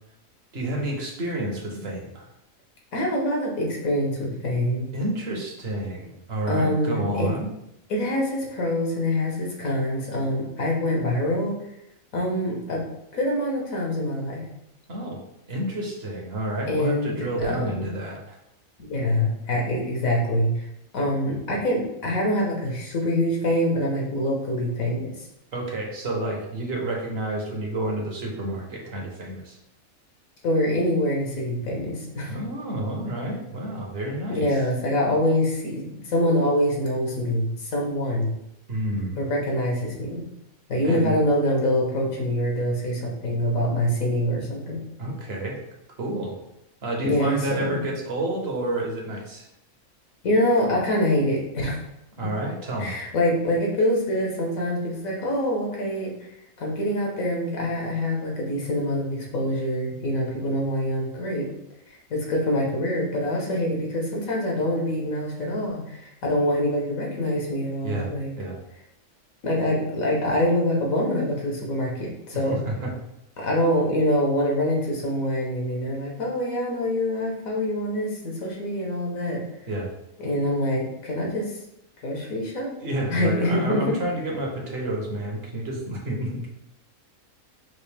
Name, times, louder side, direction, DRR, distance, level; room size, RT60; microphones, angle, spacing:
voice 1, 0.5-2.2 4.9-7.5 14.9-15.2 15.5-18.4 25.5-29.6 32.3-34.5 38.7-39.2 40.8-41.2 45.0-45.6 46.0-46.3 46.8-49.4 52.2-52.9 67.8-68.1 68.4-68.6 72.5-72.9 79.7-79.9 82.8-86.5, right 1 dB, 50° right, 0 dB, 1.2 m, -29 dB
voice 2, 2.9-4.9 6.5-7.3 7.9-11.6 12.1-12.8 13.1-14.4 16.7-17.6 18.8-20.7 20.9-25.1 30.4-32.3 34.3-38.3 39.2-40.2 40.7-44.8 47.0-47.8 50.2-51.8 52.8-56.1 56.6-61.5 62.1-68.3 69.4-72.6 73.4-79.4 80.2-81.5 82.0-82.7 83.1-83.9, left 1 dB, 75° left, -1 dB, 1.6 m, -25 dB
6.1 x 2.6 x 3.4 m, 0.82 s
omnidirectional pair, 1.4 m